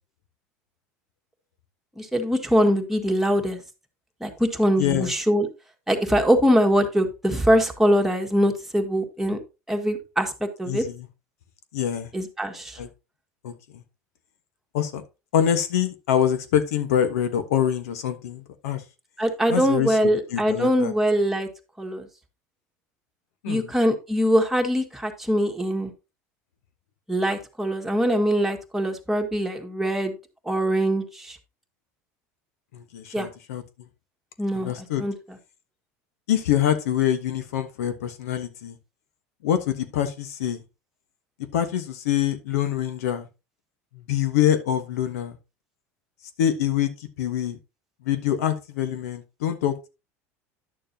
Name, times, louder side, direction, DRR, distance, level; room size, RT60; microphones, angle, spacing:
voice 1, 2.0-3.6 4.2-5.5 5.9-9.4 9.7-10.8 12.1-12.8 19.2-21.5 21.8-22.1 23.5-25.9 27.1-30.2 30.4-31.4 33.1-33.3 34.4-34.7 35.0-35.1, equal, 5° right, 2 dB, 1.9 m, -23 dB
voice 2, 4.8-5.1 10.7-11.1 11.7-12.1 12.8-12.9 13.4-13.8 14.7-15.0 15.3-18.8 19.5-20.9 23.4-23.7 32.7-33.9 34.5-35.0 36.3-38.8 39.4-40.6 41.5-43.3 43.9-45.4 46.4-47.6 48.0-49.9, left 10 dB, 80° left, 10 dB, 1.2 m, -25 dB
11.0 x 6.8 x 2.8 m, 0.27 s
hypercardioid pair, 85°, 8 cm